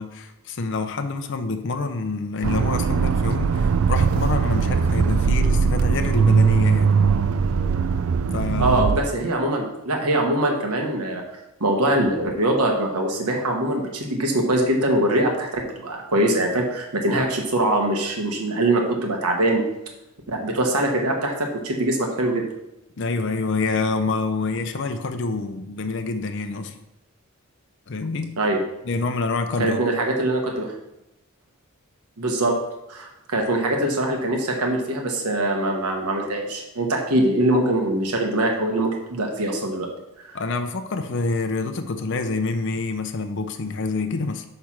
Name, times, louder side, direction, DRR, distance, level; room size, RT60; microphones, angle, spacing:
voice 1, 0.0-6.9 8.3-9.0 23.0-26.8 27.9-28.4 28.8-29.8 40.3-44.4, left 3 dB, 55° left, 7 dB, 0.6 m, -27 dB
Accelerating revving vroom, 2.4-9.0, right 5 dB, 70° right, 0.4 m, -20 dB
voice 2, 8.6-11.2 11.6-19.6 20.3-22.4 28.4-28.6 29.6-30.7 32.2-32.6 32.9-39.9 40.2-40.4, right 1 dB, 85° right, 1 dB, 1.1 m, -23 dB
8.4 x 3.3 x 5.9 m, 0.91 s
head